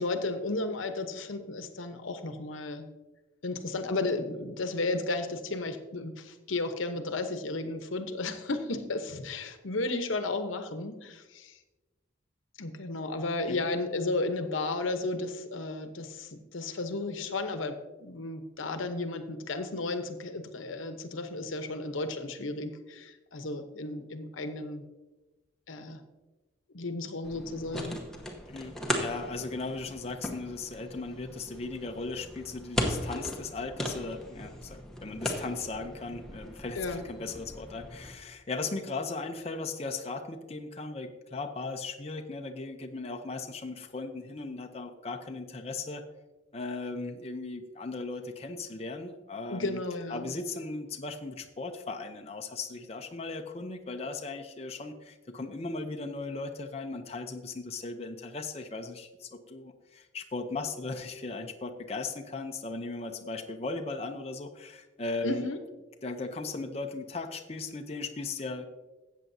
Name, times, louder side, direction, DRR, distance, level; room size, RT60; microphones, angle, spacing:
voice 1, 0.0-2.9 3.4-11.6 12.6-24.8 25.7-26.0 26.7-28.0 36.8-37.0 49.5-50.3 65.2-65.6, left 2 dB, 90° left, 8 dB, 0.9 m, -33 dB
sound 1, 27.2-38.1, left 1 dB, 5° left, 0.9 m, -37 dB
voice 2, 28.5-46.0 46.5-49.8 50.1-65.5 66.0-68.7, left 3 dB, 30° left, 4 dB, 0.6 m, -37 dB
13.5 x 8.3 x 2.7 m, 1.1 s
head